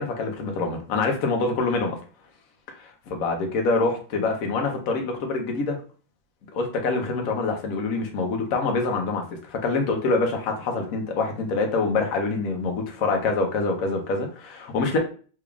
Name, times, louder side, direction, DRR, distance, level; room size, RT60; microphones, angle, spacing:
voice 1, 0.0-2.0 2.8-5.8 6.5-9.2 9.5-15.0, left 3 dB, 60° left, 3 dB, 1.1 m, -25 dB
3.4 x 3.4 x 2.3 m, 0.39 s
omnidirectional pair, 1.9 m